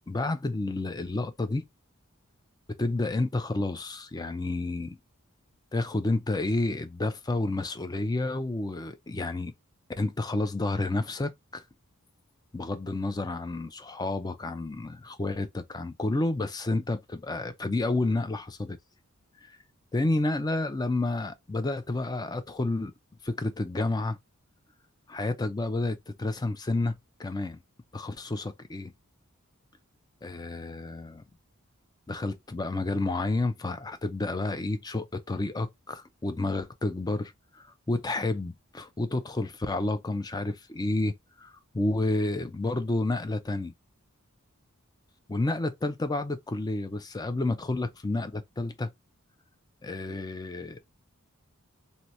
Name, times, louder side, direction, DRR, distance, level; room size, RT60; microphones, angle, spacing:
voice 1, 0.1-1.6 2.8-5.0 5.7-9.5 10.0-11.6 12.5-18.8 19.5-19.6 19.9-22.9 23.2-24.2 25.1-27.6 27.9-28.9 30.2-31.2 32.1-43.7 45.3-48.9 49.8-50.8, left 2 dB, 20° left, 0.4 m, -30 dB
2.8 x 2.7 x 3.1 m
head